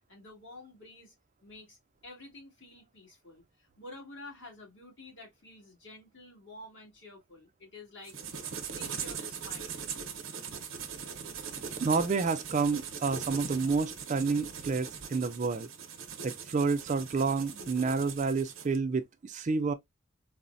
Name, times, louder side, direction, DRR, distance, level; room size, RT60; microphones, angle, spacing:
voice 1, 0.1-1.1 1.4-1.8 2.0-8.2 8.5-9.8, left 2 dB, 60° left, 1.7 m, -50 dB
sound 1, 8.0-18.8, right 7 dB, 80° right, 0.7 m, -40 dB
voice 2, 11.8-15.7 16.2-19.7, right 4 dB, 35° right, 0.4 m, -29 dB
4.0 x 2.1 x 2.4 m
head